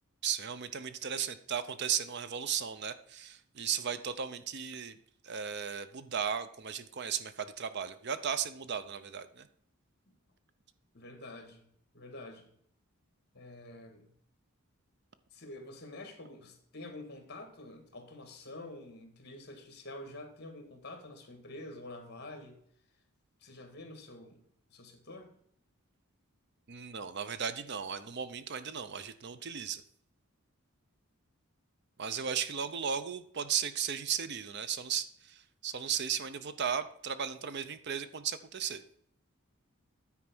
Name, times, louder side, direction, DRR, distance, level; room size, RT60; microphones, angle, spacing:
voice 1, 0.2-4.9 5.2-9.5 26.7-29.8 32.0-38.8, right 7 dB, 50° right, 12 dB, 0.6 m, -36 dB
voice 2, 10.9-11.7 11.9-12.5 13.3-14.1 15.3-22.6 23.4-24.4 24.7-25.3, left 2 dB, 50° left, 5 dB, 1.9 m, -47 dB
9.6 x 4.6 x 6.0 m, 0.67 s
head